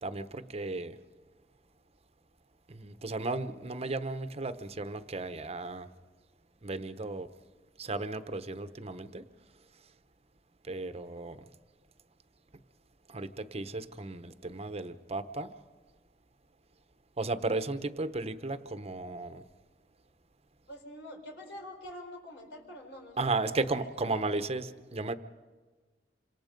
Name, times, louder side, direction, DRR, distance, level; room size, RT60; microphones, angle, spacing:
voice 1, 0.0-1.0 2.7-5.9 6.6-7.3 7.8-9.2 10.6-11.4 13.1-15.5 17.2-19.4 23.2-25.1, right 3 dB, 35° right, 11 dB, 1.0 m, -34 dB
voice 2, 20.7-24.2, left 1 dB, 85° left, 2 dB, 4.5 m, -46 dB
27.0 x 26.5 x 5.3 m, 1.4 s
head